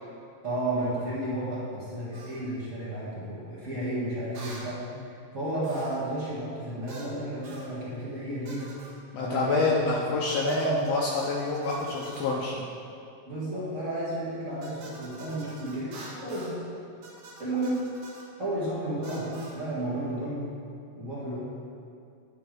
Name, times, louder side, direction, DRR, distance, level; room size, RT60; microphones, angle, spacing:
voice 1, 0.4-4.8 5.3-8.7 9.2-10.0 10.4-10.8 13.3-16.6 17.4-17.8 18.4-20.5 21.0-21.4, right 1 dB, 35° right, -9 dB, 1.2 m, -32 dB
sound 1, 2.1-2.4 4.3-4.7 5.6-6.1 6.9-7.1 7.4-7.7 8.4-9.0 10.3-12.4 14.6-16.6 17.0-18.3 19.0-19.6, right 2 dB, 60° right, 1.9 m, -47 dB
voice 2, 9.1-12.6, left 3 dB, 90° left, -4 dB, 1.4 m, -27 dB
11.0 x 4.4 x 5.1 m, 2.4 s
omnidirectional pair, 3.9 m